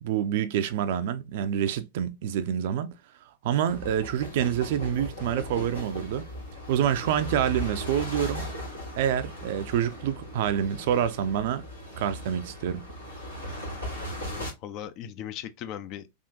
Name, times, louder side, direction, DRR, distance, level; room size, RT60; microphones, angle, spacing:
voice 1, 0.0-2.9 3.4-6.2 6.7-8.4 9.0-11.7 12.0-12.8, right 9 dB, 50° right, 0.4 m, -27 dB
sound 1, 3.7-14.5, equal, 85° left, 1.7 m, -38 dB
voice 2, 14.1-16.1, left 10 dB, 40° left, 0.4 m, -39 dB
3.5 x 2.4 x 2.6 m
figure-of-eight pair, 90°, 0 cm